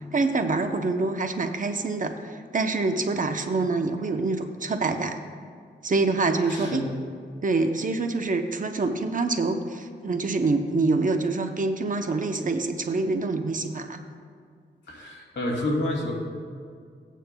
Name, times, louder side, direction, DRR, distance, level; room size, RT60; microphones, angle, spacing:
voice 1, 0.1-5.2 5.8-6.8 7.4-14.0, right 3 dB, 45° right, 6 dB, 0.7 m, -26 dB
voice 2, 6.5-6.9 14.9-16.1, left 1 dB, 75° left, -2 dB, 2.4 m, -29 dB
16.5 x 9.1 x 2.2 m, 2.1 s
wide cardioid pair, 105°, 19 cm